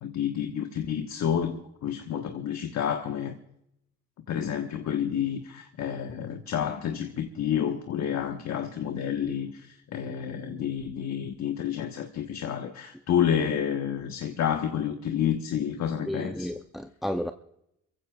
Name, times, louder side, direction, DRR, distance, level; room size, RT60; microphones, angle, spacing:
voice 1, 0.0-3.3 4.3-16.5, left 9 dB, 65° left, 1.3 m, -29 dB
voice 2, 16.1-17.3, equal, ahead, 0.6 m, -32 dB
28.5 x 15.5 x 2.4 m
cardioid pair, 90°, 30 cm